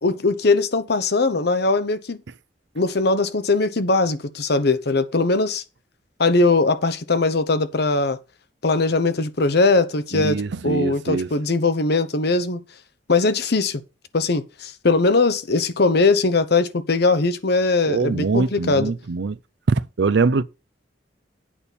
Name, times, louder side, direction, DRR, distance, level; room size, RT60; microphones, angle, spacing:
voice 1, 0.0-2.2 2.7-5.6 6.2-8.2 8.6-10.4 10.6-12.6 13.1-13.8 14.1-18.9, left 3 dB, 65° left, 1.0 m, -20 dB
voice 2, 10.1-11.3 17.9-19.4 19.7-20.4, right 4 dB, 70° right, 0.5 m, -22 dB
8.7 x 4.3 x 6.9 m
head